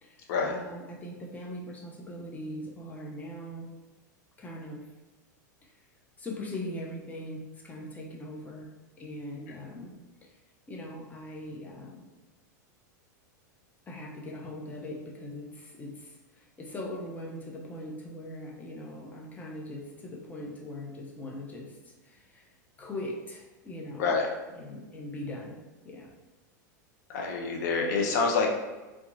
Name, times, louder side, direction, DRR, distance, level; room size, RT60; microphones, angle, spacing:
voice 1, 0.5-3.7 4.4-4.8 5.6-5.7 6.2-8.7 9.0-9.9 10.2-10.4 10.7-12.0 13.9-22.5 22.8-24.1 24.5-25.6 25.8-26.1, left 1 dB, 15° left, -1 dB, 0.5 m, -40 dB
voice 2, 27.1-28.6, left 4 dB, 65° left, 1 dB, 0.6 m, -27 dB
2.8 x 2.3 x 2.5 m, 1.1 s
hypercardioid pair, 115°, 10 cm